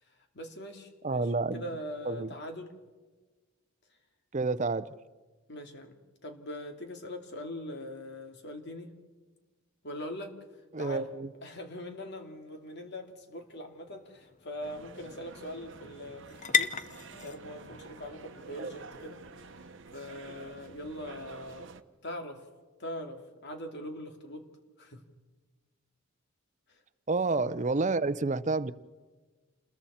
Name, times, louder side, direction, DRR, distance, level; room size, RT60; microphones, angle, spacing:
voice 1, 0.1-2.7 5.5-8.9 9.8-10.4 10.8-11.1 11.4-16.7 17.2-21.7 22.0-22.4 22.8-24.5 24.8-25.0 26.7-26.8, left 1 dB, 55° left, 4 dB, 2.6 m, -42 dB
voice 2, 1.0-1.6 2.1-2.3 4.3-4.9 10.7-11.3 18.6-18.7 27.1-28.7, right 3 dB, 35° right, 15 dB, 0.6 m, -29 dB
sound 1, 12.9-20.8, left 7 dB, 35° left, 0.8 m, -38 dB
sound 2, 14.6-21.8, right 4 dB, 60° right, 0.9 m, -49 dB
29.0 x 21.5 x 4.3 m, 1.3 s
head